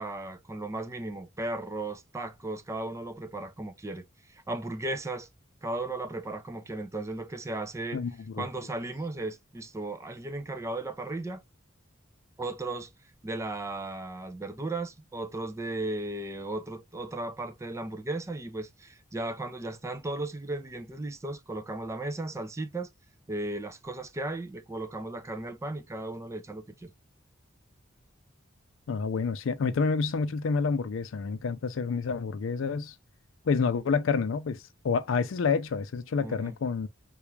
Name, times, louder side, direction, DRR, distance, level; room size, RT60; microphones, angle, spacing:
voice 1, 0.0-5.3 5.6-8.0 8.4-11.4 12.4-12.9 13.2-22.9 23.3-26.9 36.2-36.5, right 2 dB, 15° right, 0.4 m, -36 dB
voice 2, 7.9-8.5 28.9-32.9 33.5-36.9, left 5 dB, 75° left, 0.4 m, -28 dB
3.4 x 2.4 x 3.0 m
head